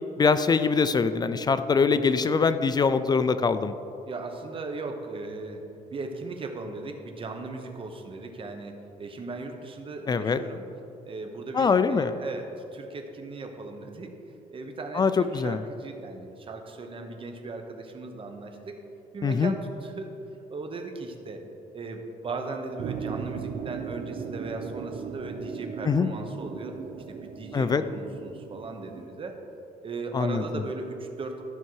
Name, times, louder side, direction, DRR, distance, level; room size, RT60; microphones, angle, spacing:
voice 1, 0.2-3.7 10.1-10.4 11.5-12.1 14.9-15.6 19.2-19.5 25.9-26.1 27.5-27.8 30.1-30.4, left 5 dB, 25° left, 12 dB, 0.4 m, -23 dB
voice 2, 4.0-5.6 5.9-10.6 11.1-14.1 14.5-18.8 19.1-20.1 20.5-21.4 21.7-26.7 27.1-29.4 29.8-31.4, right 3 dB, 35° right, 4 dB, 1.1 m, -37 dB
sound 1, 22.8-29.1, right 7 dB, 60° right, 0.5 m, -37 dB
13.0 x 5.6 x 4.7 m, 2.7 s
cardioid pair, 115°, 15 cm